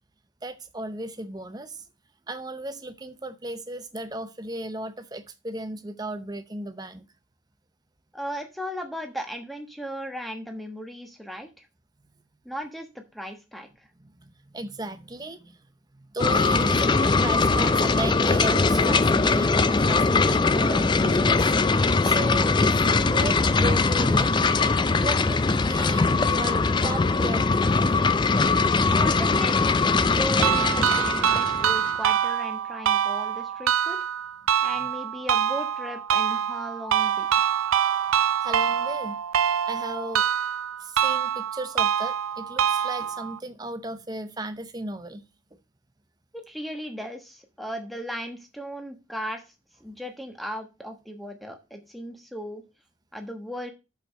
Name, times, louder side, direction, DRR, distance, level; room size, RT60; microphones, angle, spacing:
voice 1, 0.4-1.8 2.3-7.1 14.0-15.6 15.9-24.7 25.0-29.1 29.5-29.6 38.4-39.2 39.7-40.3 40.8-45.2, right 1 dB, 20° right, 0.7 m, -35 dB
voice 2, 8.1-11.7 12.4-13.9 28.9-34.0 34.6-37.3 46.3-49.5 49.8-52.6 53.1-53.7, equal, ahead, 1.2 m, -36 dB
sound 1, 16.2-31.9, left 3 dB, 20° left, 0.3 m, -21 dB
sound 2, 30.4-43.4, right 9 dB, 90° right, 0.5 m, -25 dB
6.5 x 5.4 x 6.4 m
head